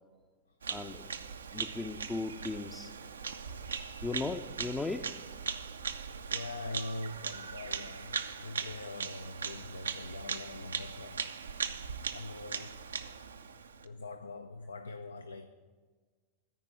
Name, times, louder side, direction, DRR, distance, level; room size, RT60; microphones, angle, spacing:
Bird vocalization bird call bird song, 0.6-13.9, right 6 dB, 70° right, 0.5 m, -39 dB
voice 1, 0.7-1.1 1.5-2.9 4.0-5.1, left 3 dB, 10° left, 0.5 m, -37 dB
voice 2, 6.3-11.3 12.1-12.9 13.8-15.5, left 2 dB, 75° left, 0.5 m, -43 dB
14.0 x 5.2 x 9.2 m
figure-of-eight pair, 90°, 0 cm